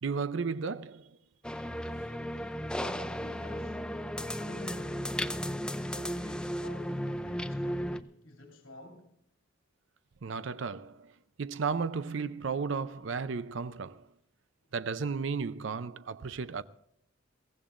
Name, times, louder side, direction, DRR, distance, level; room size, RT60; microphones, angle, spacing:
voice 1, 0.0-1.2 10.2-11.1 11.4-14.1 14.7-16.6, right 5 dB, 65° right, 0.5 m, -34 dB
sound 1, 1.4-8.0, equal, 5° left, 0.4 m, -35 dB
voice 2, 2.8-9.1, left 1 dB, 80° left, 2.9 m, -48 dB
22.5 x 16.5 x 2.5 m
head